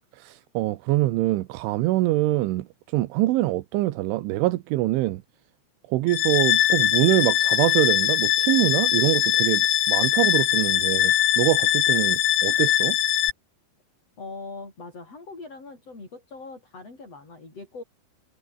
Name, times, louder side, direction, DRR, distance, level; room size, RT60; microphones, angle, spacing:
voice 1, 0.2-5.2 5.9-13.0, right 17 dB, 80° right, 3.4 m, -24 dB
sound 1, 6.1-13.3, left 12 dB, 65° left, 2.7 m, -22 dB
voice 2, 14.2-17.8, left 3 dB, 30° left, 9.0 m, -41 dB
omnidirectional pair, 5.6 m